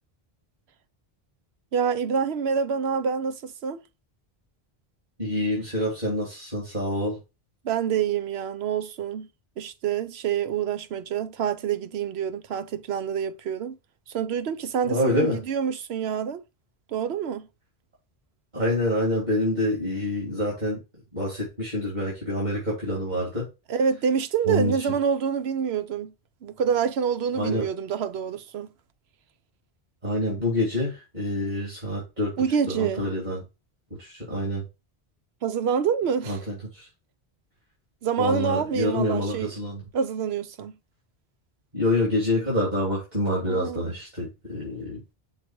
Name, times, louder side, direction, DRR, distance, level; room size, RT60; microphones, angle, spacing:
voice 1, 1.7-3.8 7.6-9.3 9.6-13.8 14.1-16.4 16.9-17.5 23.7-26.1 26.4-28.7 32.4-33.0 35.4-36.4 38.0-39.5 39.9-40.7 43.5-43.8, right 7 dB, 80° right, 0.9 m, -27 dB
voice 2, 5.2-7.2 14.8-15.4 18.5-20.8 21.1-23.5 24.4-24.7 27.3-27.7 30.0-32.3 32.7-33.4 34.0-34.6 36.2-36.9 38.2-39.8 41.7-45.0, left 1 dB, 45° right, 3.3 m, -27 dB
6.6 x 4.1 x 4.6 m
omnidirectional pair, 1.1 m